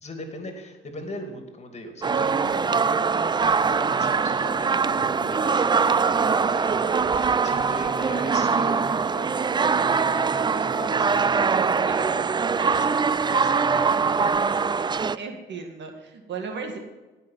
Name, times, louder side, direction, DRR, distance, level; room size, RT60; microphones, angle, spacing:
voice 1, 0.0-12.2 12.5-14.3, left 1 dB, 35° left, 5 dB, 2.6 m, -39 dB
sound 1, 2.0-15.2, right 5 dB, 20° right, 0.4 m, -22 dB
voice 2, 11.9-12.4 15.1-16.8, right 5 dB, 65° right, 4 dB, 2.1 m, -36 dB
17.0 x 5.8 x 7.4 m, 1.2 s
cardioid pair, 90°, 20 cm